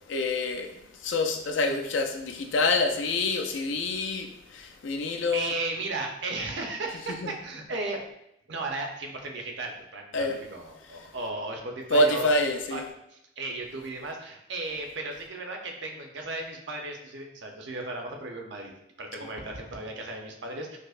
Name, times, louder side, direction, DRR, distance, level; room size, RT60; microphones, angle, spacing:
voice 1, 0.1-5.5 7.2-7.3 10.1-10.4 11.9-12.8, left 2 dB, 90° left, 0.4 m, -27 dB
voice 2, 5.3-8.0 8.5-12.3 12.7-12.8 13.1-18.7 19.0-20.8, right 2 dB, 75° right, 0.7 m, -35 dB
5.1 x 2.1 x 2.4 m
head